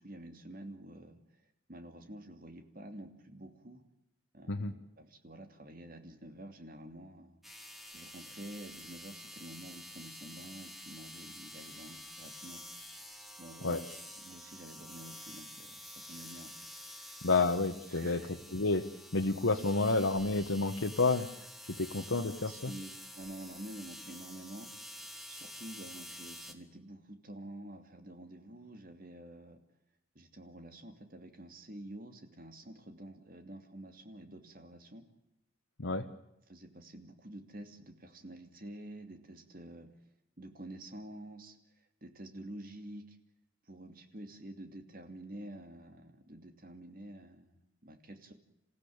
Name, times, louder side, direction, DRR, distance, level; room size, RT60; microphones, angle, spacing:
voice 1, 0.0-1.4 1.7-3.8 4.3-7.4 7.9-12.6 13.1-16.6 17.0-17.1 17.9-18.3 22.5-24.7 25.3-29.6 30.1-35.0 36.5-39.9 40.4-43.2 43.7-48.3, right 1 dB, 45° right, 7 dB, 2.7 m, -49 dB
sound 1, 7.4-26.5, left 1 dB, ahead, 1.8 m, -49 dB
voice 2, 17.2-18.2 18.5-18.9 19.1-21.3 21.7-22.7 35.8-36.0, left 3 dB, 85° left, 2 dB, 1.3 m, -30 dB
27.5 x 15.5 x 8.7 m, 0.88 s
head